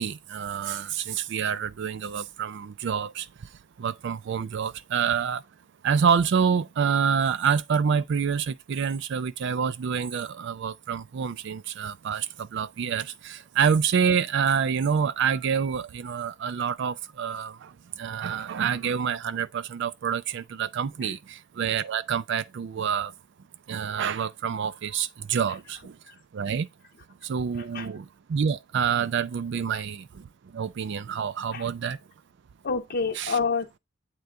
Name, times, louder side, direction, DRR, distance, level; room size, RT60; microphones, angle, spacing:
voice 1, 0.0-3.5 3.8-5.4 5.8-23.1 23.7-26.0 26.3-26.7 27.2-30.3 30.5-32.0 33.2-33.3, right 7 dB, 65° right, 0.4 m, -27 dB
voice 2, 25.5-26.1 27.5-27.9 29.7-29.8 31.5-31.7 32.6-33.8, left 5 dB, 55° left, 0.8 m, -30 dB
8.1 x 3.8 x 3.3 m
head